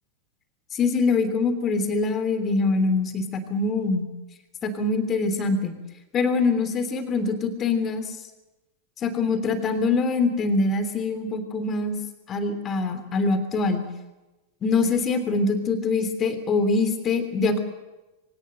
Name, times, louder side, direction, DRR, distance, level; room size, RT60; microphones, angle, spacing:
voice 1, 0.7-4.1 4.6-5.8 6.1-8.1 9.0-12.0 12.3-13.8 14.6-17.6, left 3 dB, 25° left, 10 dB, 3.2 m, -24 dB
23.0 x 18.0 x 9.2 m, 1.1 s
figure-of-eight pair, 90°, 0 cm